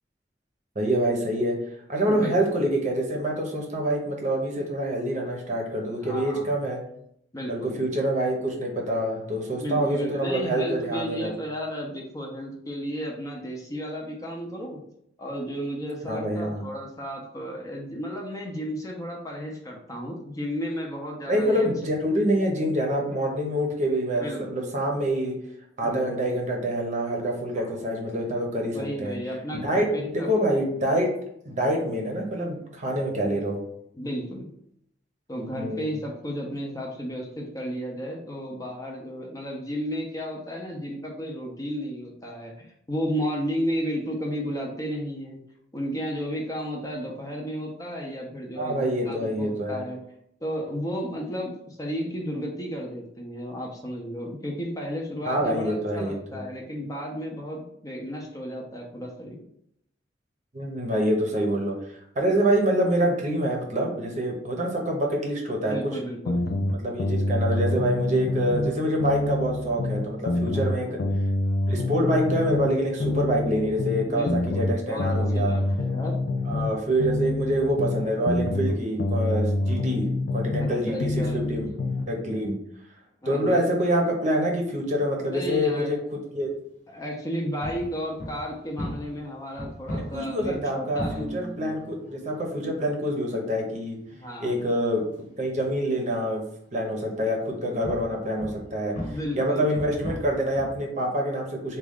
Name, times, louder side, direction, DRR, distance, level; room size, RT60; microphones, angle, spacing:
voice 1, 0.8-1.6 1.9-6.8 7.5-11.3 16.0-16.6 21.3-25.4 25.8-29.2 29.6-31.1 31.4-33.6 35.5-35.9 48.6-49.8 55.2-56.4 60.5-61.7 62.1-65.8 66.8-71.0 71.7-75.5 76.5-80.0 80.3-81.7 82.1-82.5 83.2-86.0 86.3-86.5 89.9-94.0 94.4-95.0 95.4-96.4 96.7-98.9 99.4-101.8, right 1 dB, 40° right, 0 dB, 0.7 m, -26 dB
voice 2, 6.0-6.6 7.3-7.8 9.6-14.8 15.2-21.7 24.2-24.7 25.8-26.2 27.6-27.8 28.7-30.3 33.9-34.5 35.3-45.4 45.7-50.0 50.4-59.4 65.6-66.4 70.5-71.0 74.1-76.2 80.6-81.4 83.2-83.7 85.3-86.0 86.9-91.3 94.1-94.6 99.1-99.7, equal, 20° left, -1 dB, 0.6 m, -33 dB
sound 1, 66.3-68.7 69.0-72.7 73.0-76.7 77.0-80.7 81.0-82.1, left 2 dB, 70° left, 0.4 m, -26 dB
sound 2, 87.6-96.6 97.3-100.9, equal, 45° left, 1.0 m, -38 dB
3.6 x 2.3 x 3.5 m, 0.73 s
head